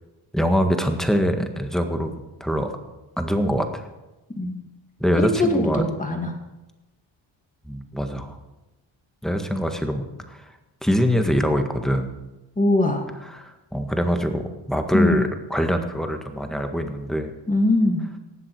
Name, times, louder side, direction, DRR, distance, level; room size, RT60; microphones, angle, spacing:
voice 1, 0.3-2.7 3.2-3.8 5.0-5.8 7.7-8.3 9.2-10.4 10.8-12.2 13.3-17.3, equal, ahead, 5 dB, 1.7 m, -24 dB
voice 2, 5.2-6.3 12.6-13.1 14.9-15.2 17.5-18.1, left 1 dB, 15° left, 3 dB, 2.5 m, -21 dB
18.5 x 7.7 x 6.3 m, 1.0 s
cardioid pair, 85°, 48 cm